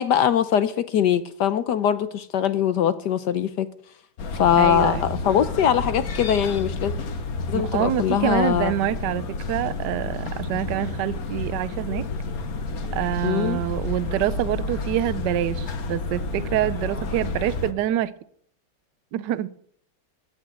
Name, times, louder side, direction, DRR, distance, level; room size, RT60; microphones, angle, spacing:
voice 1, 0.0-3.7 4.3-6.9 7.5-8.7 13.2-13.6, left 9 dB, 65° left, 13 dB, 1.1 m, -22 dB
sound 1, 4.2-17.7, left 3 dB, 50° left, 1.5 m, -30 dB
voice 2, 4.6-5.0 7.5-12.0 12.9-18.1 19.1-19.5, right 13 dB, 65° right, 16 dB, 1.1 m, -26 dB
17.0 x 6.3 x 9.1 m, 0.65 s
omnidirectional pair, 2.3 m